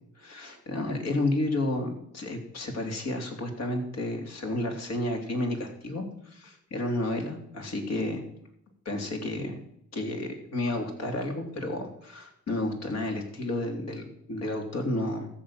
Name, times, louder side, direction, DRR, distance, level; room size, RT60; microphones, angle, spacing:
voice 1, 0.2-8.2 8.9-9.6 9.9-15.3, left 1 dB, 60° left, 3 dB, 3.5 m, -31 dB
13.5 x 7.0 x 9.0 m, 0.75 s
cardioid pair, 90°, 30 cm